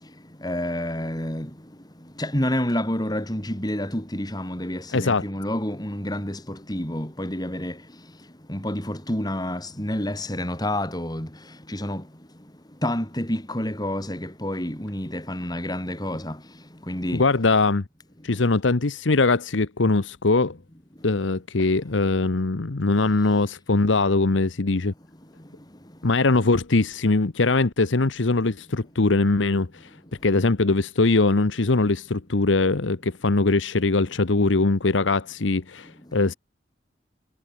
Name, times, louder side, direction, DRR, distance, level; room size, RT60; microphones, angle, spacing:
voice 1, 0.4-1.6 2.0-12.1 12.8-17.2, left 1 dB, 20° left, 4.4 m, -29 dB
voice 2, 4.9-5.2 17.1-17.8 18.2-20.6 21.0-24.9 26.0-29.9 30.2-36.3, left 3 dB, 85° left, 1.0 m, -21 dB
head